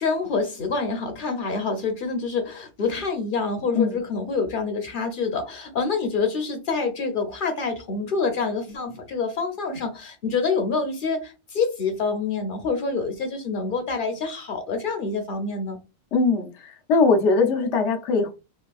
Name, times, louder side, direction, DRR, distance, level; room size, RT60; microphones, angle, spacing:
voice 1, 0.0-15.8, left 4 dB, 55° left, 0.7 m, -27 dB
voice 2, 16.1-18.3, left 4 dB, 85° left, 1.0 m, -21 dB
3.3 x 2.3 x 2.3 m
omnidirectional pair, 1.2 m